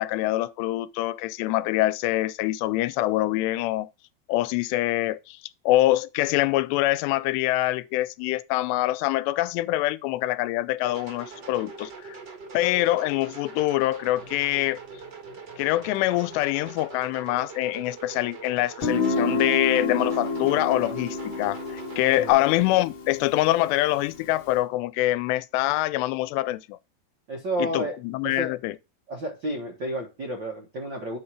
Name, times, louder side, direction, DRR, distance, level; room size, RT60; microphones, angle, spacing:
voice 1, 0.0-3.9 4.3-5.4 5.7-12.2 12.5-14.8 15.6-26.8 27.6-28.7, left 16 dB, 85° left, 2.7 m, -25 dB
sound 1, 10.8-22.3, right 5 dB, 60° right, 1.1 m, -42 dB
Guitar, 18.8-24.4, left 3 dB, 50° left, 1.6 m, -29 dB
voice 2, 27.3-28.0 28.2-28.5 29.1-31.2, right 1 dB, 85° right, 1.0 m, -31 dB
9.9 x 4.4 x 4.9 m
omnidirectional pair, 4.8 m